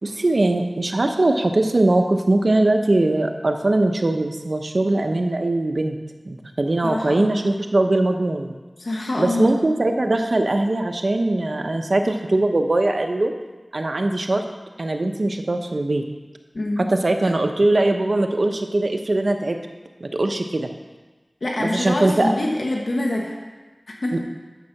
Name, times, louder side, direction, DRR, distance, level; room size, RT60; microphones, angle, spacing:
voice 1, 0.0-6.0 6.3-8.5 9.2-13.3 13.7-14.4 14.8-16.0 16.8-19.6 20.0-20.7 21.6-22.3 24.1-24.2, right 2 dB, 70° right, 5 dB, 0.9 m, -21 dB
voice 2, 6.8-7.3 8.8-9.6 16.5-16.9 21.4-23.3 24.0-24.2, left 1 dB, 90° left, -1 dB, 1.2 m, -25 dB
9.5 x 7.3 x 5.9 m, 1.3 s
wide cardioid pair, 60°, 0 cm